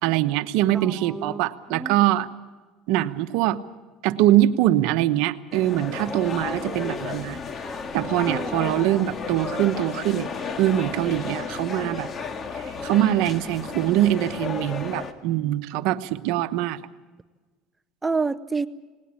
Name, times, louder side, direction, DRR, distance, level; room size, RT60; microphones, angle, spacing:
voice 1, 0.0-2.3 2.9-3.6 4.0-7.4 7.9-10.3 10.6-12.1 12.8-16.8, right 13 dB, 75° right, 11 dB, 1.0 m, -23 dB
voice 2, 0.7-1.4 1.7-2.1 8.2-8.8 18.0-18.7, right 4 dB, 15° right, 12 dB, 0.7 m, -29 dB
sound 1, 5.5-15.1, left 5 dB, 35° left, 1.8 m, -33 dB
19.5 x 19.0 x 8.5 m, 1.3 s
supercardioid pair, 110°, 0 cm